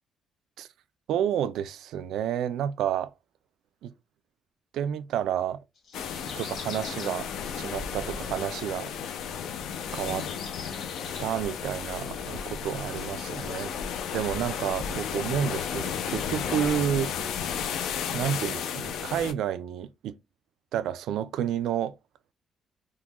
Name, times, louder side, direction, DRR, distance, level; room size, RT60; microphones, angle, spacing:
voice 1, 1.1-3.1 3.8-3.9 4.7-5.6 6.2-7.3 7.6-8.9 9.9-10.3 11.2-13.7 14.1-17.1 18.1-20.2 20.7-22.0, right 9 dB, 80° right, 0.3 m, -30 dB
sound 1, 5.8-7.1 7.7-7.9 9.7-11.3 11.9-12.0 12.4-13.6, left 4 dB, 45° left, 1.3 m, -45 dB
sound 2, 5.9-19.3, left 7 dB, 85° left, 0.4 m, -33 dB
3.6 x 2.2 x 2.9 m
cardioid pair, 175°, 0 cm